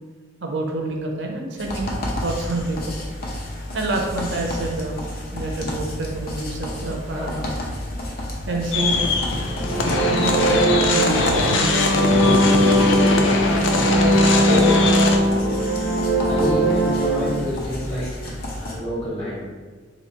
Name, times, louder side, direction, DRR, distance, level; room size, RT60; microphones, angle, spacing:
voice 1, 0.4-1.9 2.2-3.0 3.7-5.0 5.3-7.4 8.5-9.1 10.1-12.6, right 2 dB, 65° right, 1 dB, 0.6 m, -27 dB
sound 1, 1.6-18.8, left 1 dB, 50° left, 0.7 m, -31 dB
sound 2, 8.7-15.2, left 3 dB, 80° left, 0.5 m, -22 dB
sound 3, 9.5-17.4, equal, 5° right, 0.6 m, -20 dB
voice 2, 13.5-15.6 16.2-19.4, left 1 dB, 30° left, -6 dB, 1.2 m, -30 dB
3.0 x 2.8 x 4.3 m, 1.4 s
head